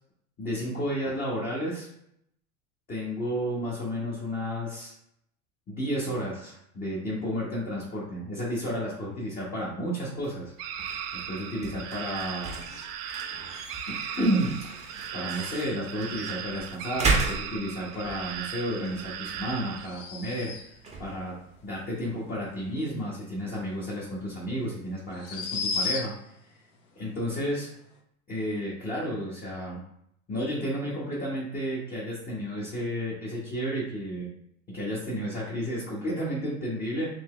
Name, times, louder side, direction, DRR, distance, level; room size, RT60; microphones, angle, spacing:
voice 1, 0.4-1.9 2.9-4.9 5.7-10.5 11.1-12.6 13.9-20.7 21.0-21.3 21.6-26.1 26.9-27.7 28.3-29.8 30.3-34.3 34.7-37.1, equal, 20° left, -6 dB, 1.3 m, -32 dB
sound 1, 10.1-22.9, right 3 dB, 15° right, 0.9 m, -36 dB
sound 2, 10.6-19.9, right 8 dB, 50° right, 0.6 m, -37 dB
sound 3, 19.8-20.9 24.0-24.1 25.1-26.4, left 4 dB, 60° left, 1.0 m, -33 dB
4.5 x 2.8 x 3.2 m, 0.74 s
hypercardioid pair, 110°, 42 cm